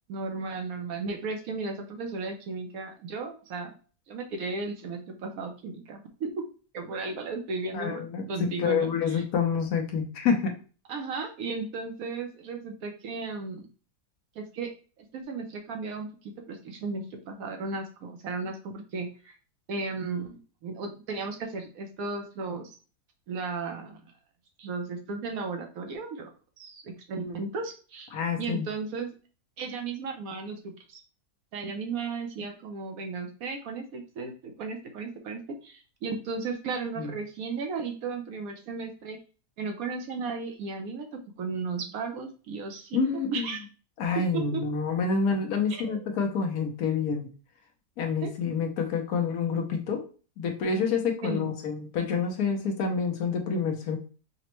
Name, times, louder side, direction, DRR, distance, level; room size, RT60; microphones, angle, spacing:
voice 1, 0.1-3.7 4.1-6.3 6.7-9.2 10.9-13.7 14.4-14.7 15.0-19.4 19.7-22.8 23.3-24.0 24.6-26.3 26.6-29.1 29.6-30.6 30.9-31.0 31.5-39.2 39.6-43.0 43.3-43.6 44.3-44.6 45.7-46.0 48.2-48.3 51.2-51.6, right 4 dB, 70° right, 4 dB, 1.0 m, -35 dB
voice 2, 7.7-10.5 28.1-28.7 37.0-37.1 42.9-43.5 44.0-47.3 48.0-50.0 50.4-54.0, left 5 dB, 70° left, 4 dB, 1.1 m, -28 dB
5.0 x 2.1 x 2.9 m, 0.37 s
omnidirectional pair, 1.7 m